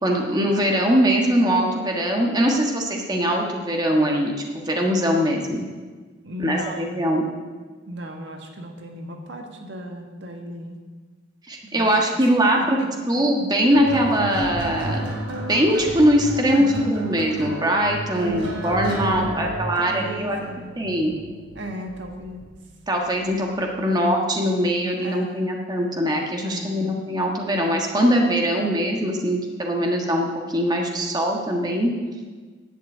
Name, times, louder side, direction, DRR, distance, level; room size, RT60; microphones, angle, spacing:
voice 1, 0.0-5.7 6.4-7.3 11.5-12.8 13.1-15.0 15.4-20.4 20.8-21.1 22.9-31.9, equal, 20° right, 1 dB, 1.4 m, -22 dB
voice 2, 6.2-6.9 7.8-10.8 11.7-12.9 16.5-16.9 18.1-18.5 19.1-20.8 21.5-22.5 23.8-24.3 25.0-25.5 26.4-26.8, equal, 65° right, 3 dB, 1.7 m, -35 dB
sound 1, 13.7-22.4 23.4-23.7, right 1 dB, 85° right, 2.9 m, -31 dB
11.0 x 7.9 x 8.6 m, 1.4 s
head